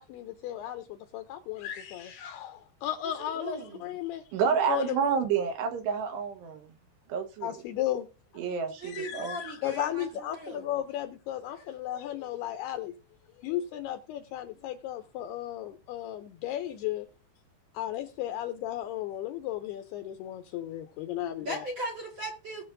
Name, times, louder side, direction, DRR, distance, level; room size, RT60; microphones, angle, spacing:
voice 1, 0.0-4.2 4.7-5.2 7.4-8.1 8.3-8.5 8.8-12.9 13.4-17.1 17.7-21.6, left 12 dB, 80° left, 2.5 m, -35 dB
voice 2, 3.2-3.8 8.8-10.7 21.4-22.6, right 1 dB, 40° right, 1.8 m, -38 dB
voice 3, 4.3-6.7 7.1-7.6 8.4-9.4, right 6 dB, 75° right, 3.4 m, -29 dB
19.5 x 7.1 x 2.6 m
omnidirectional pair, 5.0 m